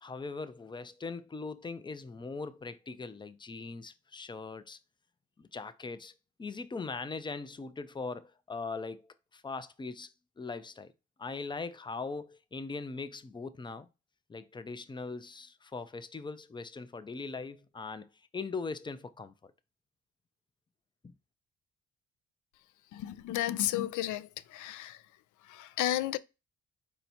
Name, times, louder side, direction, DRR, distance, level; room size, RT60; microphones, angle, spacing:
voice 1, 0.0-4.8 5.4-10.1 10.4-10.9 11.2-13.9 14.3-18.1 18.3-19.5, left 4 dB, 15° left, 0.4 m, -40 dB
voice 2, 22.9-24.3 24.5-25.0 25.5-26.2, left 13 dB, 75° left, 0.5 m, -32 dB
4.5 x 2.7 x 4.2 m
cardioid pair, 90°, 30 cm